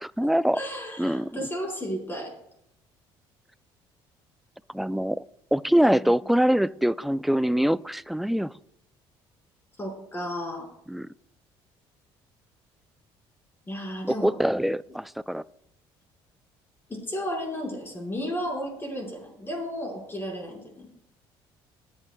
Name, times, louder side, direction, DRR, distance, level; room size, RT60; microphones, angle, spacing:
voice 1, 0.0-0.6 1.0-1.3 4.7-5.2 5.5-8.5 10.9-11.1 14.1-15.4, equal, ahead, 17 dB, 0.3 m, -24 dB
voice 2, 0.5-2.3 6.0-6.1 9.8-10.7 13.7-14.3 16.9-20.9, equal, 20° left, 0 dB, 4.6 m, -33 dB
19.5 x 11.0 x 2.2 m, 0.76 s
cardioid pair, 105°, 10 cm